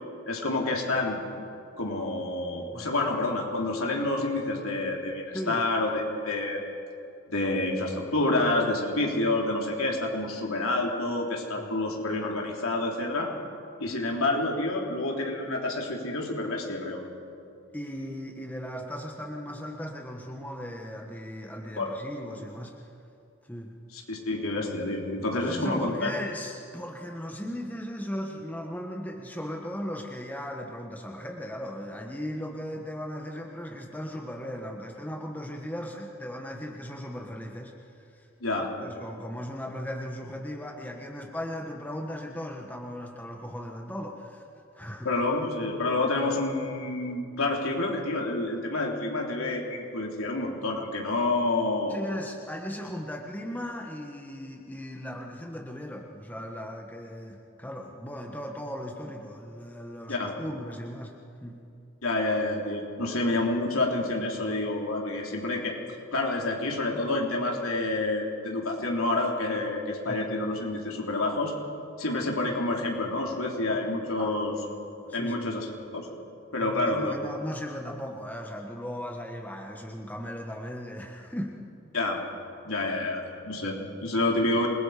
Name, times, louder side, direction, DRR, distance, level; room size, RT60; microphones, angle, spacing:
voice 1, 0.3-1.2 1.8-6.7 7.3-13.3 13.8-17.0 21.8-21.9 23.9-26.1 38.4-38.7 45.0-52.0 60.1-60.3 62.0-65.8 66.1-71.5 72.0-74.5 75.1-76.1 76.5-77.1 81.9-82.2 82.6-84.7, left 2 dB, 70° left, -1 dB, 3.7 m, -28 dB
voice 2, 5.3-5.6 11.6-11.7 17.7-22.8 23.5-23.7 25.3-38.0 38.6-44.4 44.7-45.1 51.9-61.6 70.0-70.2 74.2-74.3 74.7-75.5 76.6-81.6 82.8-82.9, equal, 10° left, 0 dB, 1.5 m, -37 dB
28.0 x 21.0 x 5.1 m, 2.7 s
head